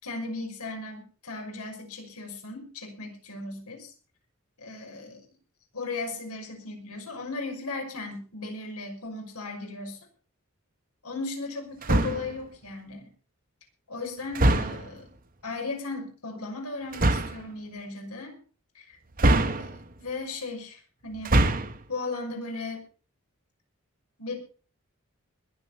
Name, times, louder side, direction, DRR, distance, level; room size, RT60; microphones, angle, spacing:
voice 1, 0.0-3.9 4.6-5.2 5.7-10.0 11.0-13.1 13.9-15.0 15.4-18.4 18.7-19.0 19.4-21.4 21.9-22.8 24.2-24.4, left 3 dB, 90° left, 3 dB, 5.8 m, -36 dB
sound 1, 11.8-12.4 14.3-15.0 16.9-17.4 19.2-20.0 21.1-21.8, right 1 dB, 40° right, 1.2 m, -23 dB
21.0 x 8.0 x 5.8 m, 0.38 s
head